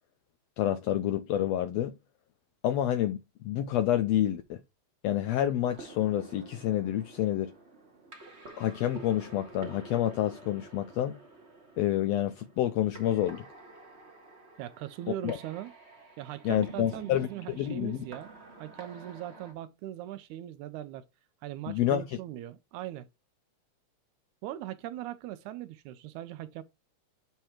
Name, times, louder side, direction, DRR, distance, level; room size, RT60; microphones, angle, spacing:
voice 1, 0.6-1.9 2.6-4.6 5.0-7.5 8.6-11.2 11.8-13.4 15.2-15.4 16.4-17.3 17.6-18.0 21.7-22.0, left 12 dB, 85° left, 1.5 m, -28 dB
sound 1, 5.6-19.5, right 3 dB, 35° right, 1.1 m, -50 dB
voice 2, 14.6-15.7 16.2-18.3 18.6-21.1 21.4-23.1 24.4-26.6, right 13 dB, 80° right, 1.9 m, -40 dB
7.2 x 3.4 x 4.4 m
omnidirectional pair, 3.5 m